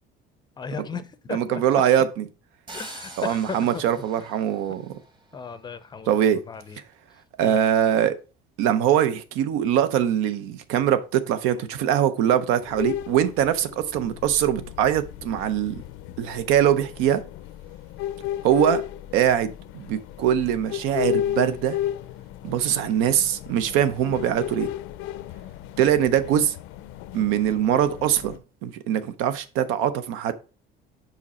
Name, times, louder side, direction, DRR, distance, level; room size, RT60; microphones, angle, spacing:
voice 1, 0.6-1.8 2.7-3.8 4.2-4.3 5.3-6.8 7.4-7.6, left 5 dB, 20° left, 0.5 m, -36 dB
voice 2, 1.3-2.1 3.2-4.9 6.1-6.4 7.4-8.2 8.6-15.7 16.2-17.2 18.4-18.8 19.1-21.8 22.4-24.7 25.8-26.5 27.1-28.4 28.6-30.3, right 10 dB, 90° right, 0.7 m, -22 dB
sound 1, 2.7-5.5, right 2 dB, 20° right, 1.1 m, -44 dB
sound 2, 12.7-28.4, left 12 dB, 75° left, 0.5 m, -34 dB
5.2 x 4.9 x 4.2 m
cardioid pair, 145°, 21 cm